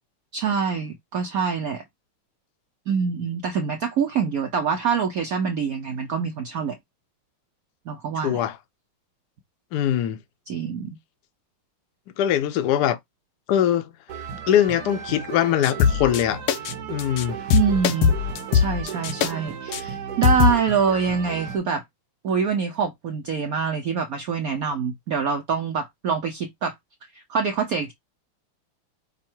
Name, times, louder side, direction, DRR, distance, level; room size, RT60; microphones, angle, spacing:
voice 1, 0.3-1.8 2.9-6.8 7.9-8.4 10.5-10.9 17.5-18.1 18.5-21.8 22.2-26.7 27.1-27.9, right 6 dB, 75° right, 0.8 m, -25 dB
voice 2, 8.2-8.6 9.7-10.2 12.2-13.0 13.5-13.9 14.5-16.4 16.9-17.4, left 11 dB, 65° left, 1.0 m, -22 dB
sound 1, 14.1-21.6, right 7 dB, 60° right, 1.1 m, -35 dB
sound 2, 15.6-16.2 16.5-16.7 17.0-17.2 17.5-19.3 19.7-19.8 20.2-20.6, left 7 dB, 85° left, 1.5 m, -20 dB
5.5 x 2.1 x 4.3 m
omnidirectional pair, 2.3 m